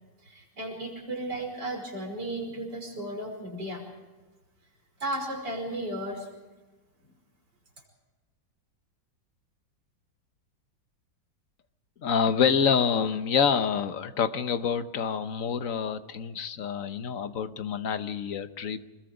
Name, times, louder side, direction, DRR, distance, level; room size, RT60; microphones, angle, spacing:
voice 1, 0.2-3.8 5.0-6.3, right 1 dB, 65° right, 2 dB, 5.8 m, -34 dB
voice 2, 12.0-18.9, left 6 dB, 50° left, 10 dB, 1.3 m, -27 dB
26.5 x 21.0 x 5.1 m, 1.2 s
omnidirectional pair, 2.0 m